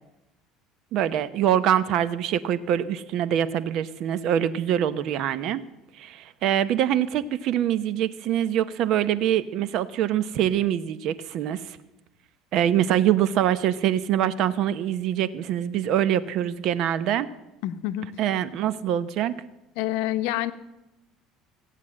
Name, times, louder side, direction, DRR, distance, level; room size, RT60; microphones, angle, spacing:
voice 1, 0.9-5.6 6.0-11.8 12.5-17.3 18.2-19.4, right 10 dB, 55° right, 14 dB, 0.8 m, -24 dB
voice 2, 17.6-18.1 19.8-20.5, left 14 dB, 80° left, 12 dB, 0.8 m, -27 dB
16.5 x 8.4 x 7.4 m, 0.95 s
cardioid pair, 140°, 0 cm